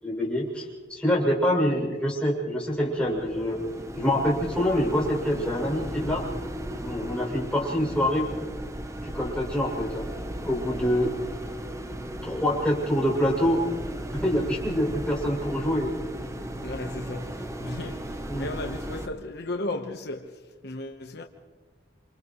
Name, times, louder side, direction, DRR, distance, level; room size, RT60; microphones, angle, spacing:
voice 1, 0.0-3.6 4.0-6.3 6.8-8.5 9.0-10.0 10.4-11.1 12.2-13.6 14.1-15.9 18.3-18.5, equal, 5° left, 7.2 m, -26 dB
sound 1, 2.8-19.1, equal, 15° right, 1.0 m, -36 dB
voice 2, 16.5-21.2, left 2 dB, 65° left, 1.2 m, -35 dB
29.0 x 28.0 x 3.2 m
head